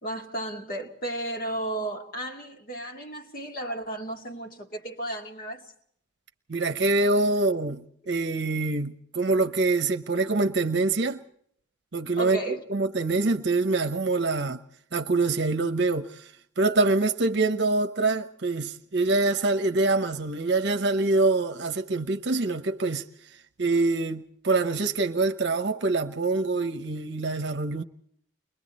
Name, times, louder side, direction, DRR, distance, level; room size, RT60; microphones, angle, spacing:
voice 1, 0.0-5.7 12.2-12.6, right 1 dB, 45° left, 2.3 m, -34 dB
voice 2, 6.5-11.2 11.9-14.6 14.9-16.2 16.6-23.0 23.6-27.8, right 3 dB, 60° right, 0.9 m, -25 dB
30.0 x 22.0 x 4.2 m
head